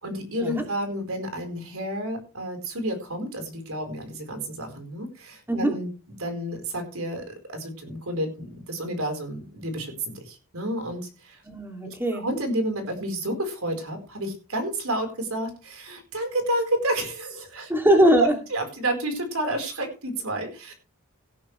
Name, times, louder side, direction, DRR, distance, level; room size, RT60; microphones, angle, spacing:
voice 1, 0.0-5.9 6.2-11.4 11.9-17.7 18.2-20.7, right 1 dB, 75° right, 5 dB, 4.5 m, -30 dB
voice 2, 11.5-12.2 17.7-18.3, right 1 dB, 10° right, 3 dB, 2.7 m, -21 dB
17.5 x 10.5 x 3.3 m, 0.33 s
head